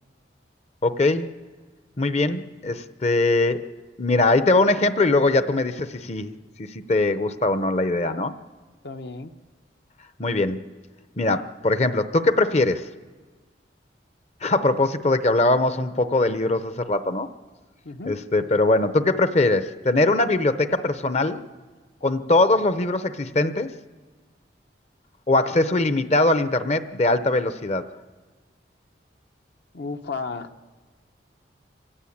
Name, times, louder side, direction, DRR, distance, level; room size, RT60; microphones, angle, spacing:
voice 1, 0.8-1.3 2.0-3.6 4.0-6.3 6.6-8.3 10.2-10.6 11.2-12.9 14.4-17.3 18.1-21.4 22.0-23.7 25.3-27.9, left 2 dB, 35° left, 11 dB, 0.8 m, -21 dB
voice 2, 8.8-9.3 17.8-18.2 29.7-30.5, left 4 dB, 65° left, 7 dB, 1.0 m, -33 dB
26.0 x 15.5 x 8.6 m, 1.4 s
head